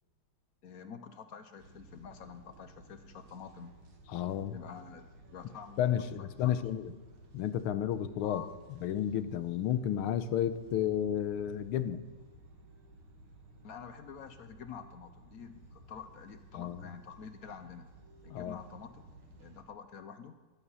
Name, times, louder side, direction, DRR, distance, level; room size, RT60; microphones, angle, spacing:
voice 1, 0.6-3.7 4.5-5.9 6.2-6.5 8.2-8.5 13.6-17.8 18.2-19.0 19.4-20.3, left 6 dB, 65° left, 9 dB, 0.9 m, -48 dB
sound 1, 1.6-19.6, right 1 dB, 75° right, 2.6 m, -56 dB
voice 2, 4.1-4.6 5.8-6.9 7.3-8.4 8.8-12.0 16.5-16.8 18.3-18.6, left 10 dB, 90° left, 12 dB, 1.6 m, -32 dB
12.0 x 11.5 x 5.6 m, 1.2 s
omnidirectional pair, 2.3 m